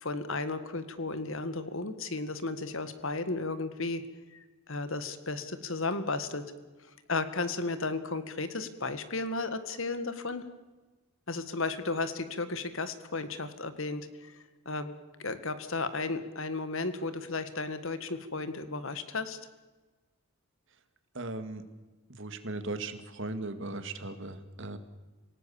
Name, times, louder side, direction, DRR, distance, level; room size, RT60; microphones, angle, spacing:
voice 1, 0.0-4.0 4.3-6.4 7.1-10.4 11.3-14.4 14.7-14.9 15.2-19.4, left 3 dB, 60° left, 11 dB, 1.9 m, -34 dB
voice 2, 21.1-21.6 22.1-24.8, right 2 dB, 55° right, 9 dB, 2.2 m, -37 dB
28.0 x 18.5 x 7.2 m, 1.2 s
head